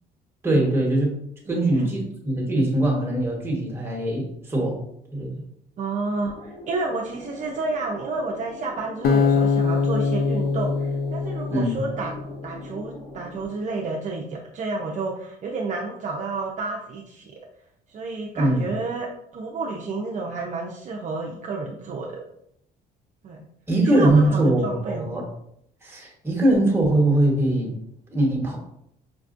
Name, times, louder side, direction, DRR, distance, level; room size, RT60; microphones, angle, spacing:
voice 1, 0.4-1.2 1.5-4.8 5.1-5.3 11.5-11.8 18.3-18.6 23.7-25.2 25.8-27.8 28.1-28.6, right 1 dB, 15° right, -2 dB, 1.2 m, -21 dB
voice 2, 1.5-1.9 5.8-12.1 12.4-17.3 17.9-19.1 19.3-22.1 23.2-23.4 23.8-25.0, right 3 dB, 45° right, -1 dB, 0.5 m, -30 dB
sound 1, 6.3-13.4, left 1 dB, 30° left, 1.2 m, -42 dB
Acoustic guitar, 9.0-12.3, left 4 dB, 70° left, 0.4 m, -23 dB
5.1 x 2.3 x 2.5 m, 0.74 s
cardioid pair, 110°, 17 cm